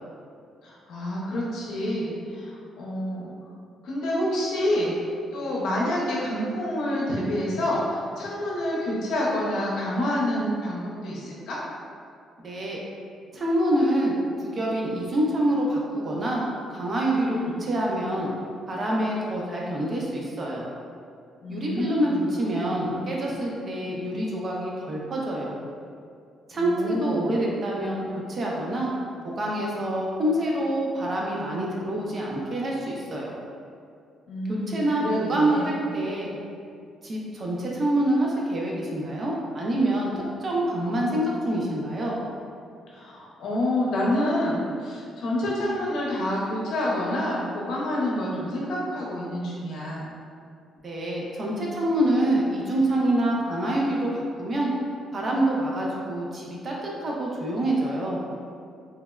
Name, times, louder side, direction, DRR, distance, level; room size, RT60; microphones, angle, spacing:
voice 1, 0.6-3.3 3.8-5.0 5.3-11.6 17.3-17.7 21.4-22.2 22.9-23.3 26.5-27.4 34.3-35.7 42.9-50.1, left 1 dB, 80° left, -5 dB, 0.6 m, -28 dB
voice 2, 12.4-12.8 13.3-14.1 14.4-16.4 16.7-18.3 18.7-20.6 21.5-25.5 26.5-28.9 29.4-33.3 34.5-36.4 37.0-42.2 50.8-54.7 55.1-56.7 57.0-58.2, right 1 dB, 40° right, -3 dB, 0.5 m, -26 dB
3.3 x 2.0 x 2.3 m, 2.3 s
cardioid pair, 90°, 0 cm